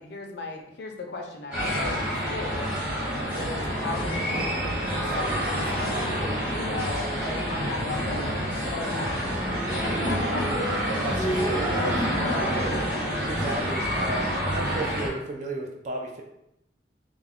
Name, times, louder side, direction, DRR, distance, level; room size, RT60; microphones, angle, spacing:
voice 1, 0.0-2.7 3.3-4.5 4.8-8.3 8.7-9.2 9.8-10.9 11.8-13.3, left 3 dB, 70° left, 2 dB, 0.4 m, -36 dB
sound 1, 1.5-15.1, equal, 5° right, 0.8 m, -27 dB
voice 2, 3.1-3.5 8.9-9.3 11.0-11.8 13.3-16.2, right 2 dB, 40° right, 1 dB, 0.3 m, -34 dB
2.4 x 2.0 x 3.4 m, 0.83 s
head